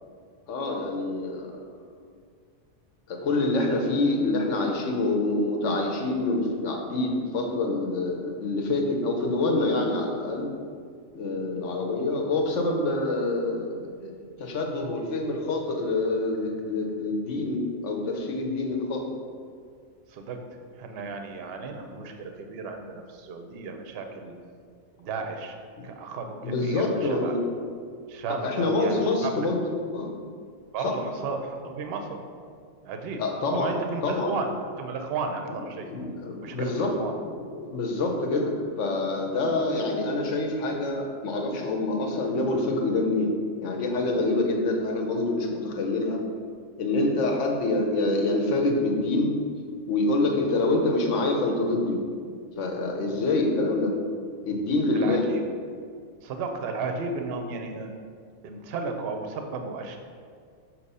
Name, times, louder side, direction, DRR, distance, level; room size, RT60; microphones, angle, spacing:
voice 1, 0.5-1.5 3.1-10.5 11.1-14.1 14.4-19.0 25.8-25.9 26.4-27.5 28.4-29.6 29.9-30.1 30.8-31.0 33.2-33.7 34.0-34.3 35.9-36.9 37.2-43.3 43.6-46.2 46.8-49.3 49.9-52.0 52.6-53.9 54.4-55.2, left 2 dB, 65° left, 2 dB, 1.1 m, -26 dB
voice 2, 20.1-20.4 20.8-24.3 25.0-25.6 25.8-27.3 28.1-29.5 30.7-32.2 32.8-33.2 33.5-34.5 34.8-35.9 36.4-37.1 54.9-55.4 56.2-58.0 58.4-60.0, right 4 dB, 60° right, 5 dB, 0.7 m, -34 dB
6.1 x 3.0 x 5.4 m, 2.1 s
omnidirectional pair, 1.4 m